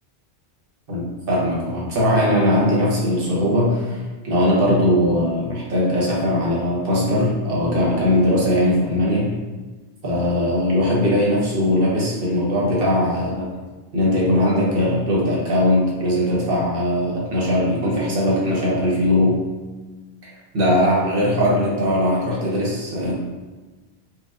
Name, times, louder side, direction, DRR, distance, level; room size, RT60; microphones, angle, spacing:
voice 1, 0.9-9.3 10.0-13.5 13.9-19.4 20.2-23.1, left 1 dB, 60° right, -6 dB, 1.1 m, -20 dB
4.3 x 2.5 x 2.4 m, 1.3 s
omnidirectional pair, 1.1 m